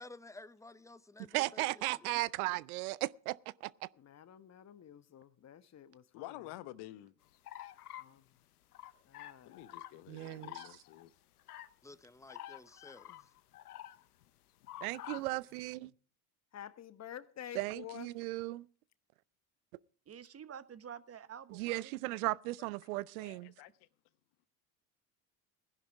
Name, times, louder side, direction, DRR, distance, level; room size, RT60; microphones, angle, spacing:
voice 1, 0.0-2.1 11.8-13.3, left 2 dB, 5° left, 0.7 m, -53 dB
voice 2, 1.3-3.7 10.1-10.8 14.8-15.9 17.5-18.6 21.5-23.5, right 20 dB, 75° right, 0.6 m, -36 dB
voice 3, 4.0-6.4 8.0-8.3 9.1-9.6 13.1-13.2 16.5-18.1, left 10 dB, 35° left, 1.1 m, -50 dB
voice 4, 6.1-7.1 9.5-11.1 23.2-23.7, left 15 dB, 60° left, 0.9 m, -49 dB
sound 1, 7.4-8.1 8.7-9.9 10.2-11.1 11.4-11.7 12.3-14.3 14.6-15.3, left 13 dB, 90° left, 0.8 m, -48 dB
voice 5, 20.1-21.9, right 8 dB, 35° right, 1.0 m, -49 dB
19.5 x 10.5 x 3.5 m
hypercardioid pair, 65°, 44 cm